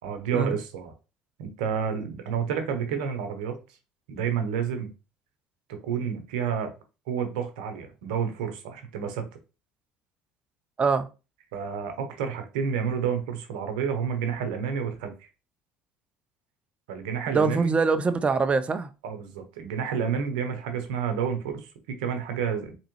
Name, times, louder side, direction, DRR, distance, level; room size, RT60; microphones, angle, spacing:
voice 1, 0.0-0.9 1.4-3.6 4.1-4.9 5.7-6.7 7.1-9.3 11.5-15.3 16.9-17.7 19.0-22.7, right 7 dB, 85° right, 0.8 m, -30 dB
voice 2, 17.3-18.9, right 4 dB, 25° right, 0.5 m, -23 dB
3.6 x 2.9 x 3.0 m
hypercardioid pair, 75°, 4 cm